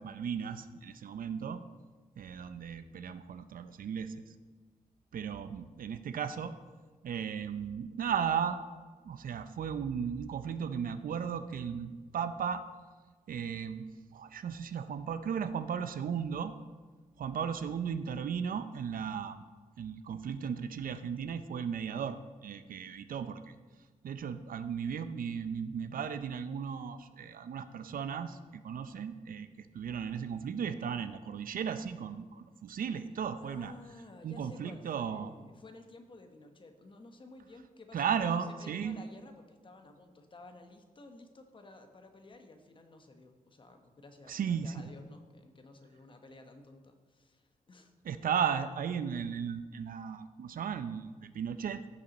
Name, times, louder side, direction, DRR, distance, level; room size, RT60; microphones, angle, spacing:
voice 1, 0.0-1.6 2.2-4.2 5.1-6.5 7.0-8.6 9.0-12.6 13.3-13.9 14.1-16.6 17.2-19.4 19.8-23.6 24.0-33.7 34.2-35.3 37.9-39.0 44.3-44.8 48.0-51.8, right 7 dB, 75° right, 11 dB, 0.5 m, -35 dB
voice 2, 33.4-47.9, left 2 dB, 35° left, 6 dB, 1.0 m, -53 dB
15.5 x 5.4 x 4.1 m, 1.4 s
wide cardioid pair, 155°, 15 cm